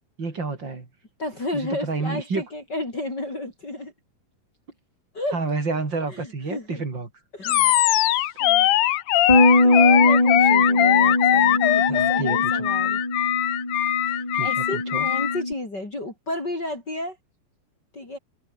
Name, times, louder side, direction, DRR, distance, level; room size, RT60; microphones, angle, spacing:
voice 1, 0.2-0.9 1.5-2.4 5.3-7.1 11.9-12.7 14.3-15.1, right 3 dB, 30° right, 4.4 m, -29 dB
voice 2, 1.2-3.9 5.1-5.4 6.1-6.8 7.3-7.8 8.4-8.7 9.6-13.0 14.1-14.2 14.4-17.2 17.9-18.2, left 1 dB, 25° left, 6.1 m, -32 dB
Animal, 7.4-15.4, left 14 dB, 65° left, 2.3 m, -21 dB
Bass guitar, 9.3-15.5, left 1 dB, 10° left, 3.2 m, -21 dB
omnidirectional pair, 4.3 m